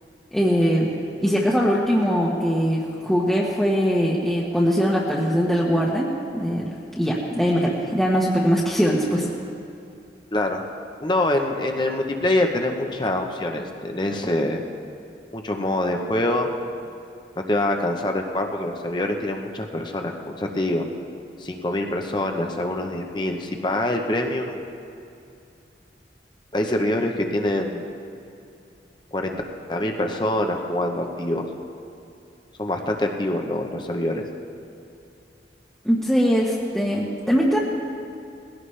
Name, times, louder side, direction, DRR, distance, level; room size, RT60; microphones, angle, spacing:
voice 1, 0.3-0.9 1.2-9.3 35.8-37.6, equal, ahead, -6 dB, 1.1 m, -21 dB
voice 2, 10.3-10.6 11.0-14.6 15.3-16.5 17.4-20.9 21.4-24.6 26.5-27.9 29.1-29.4 29.7-31.4 32.6-34.2, left 1 dB, 25° left, 3 dB, 0.9 m, -25 dB
20.0 x 16.5 x 3.3 m, 2.6 s
head